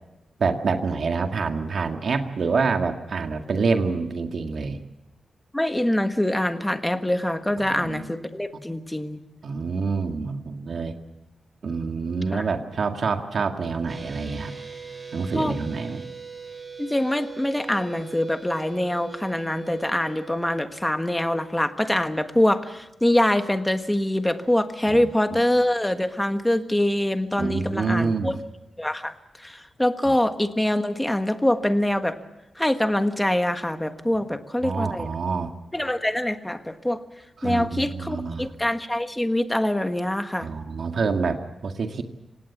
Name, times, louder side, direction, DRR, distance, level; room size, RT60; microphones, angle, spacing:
voice 1, 0.4-4.8 7.6-8.1 9.4-11.0 11.6-14.5 15.1-16.0 24.9-25.1 27.4-28.3 30.0-30.1 34.6-35.5 37.4-38.5 40.4-42.0, right 4 dB, 60° right, 5 dB, 1.9 m, -27 dB
voice 2, 5.5-9.2 12.3-12.4 15.3-15.6 16.8-28.4 28.8-32.2 32.5-35.1 35.7-37.0 37.4-40.5, left 1 dB, 10° left, 8 dB, 1.4 m, -24 dB
sound 1, 13.9-20.6, right 5 dB, 30° right, 3.0 m, -41 dB
26.0 x 18.5 x 7.2 m, 0.96 s
wide cardioid pair, 125°, 0 cm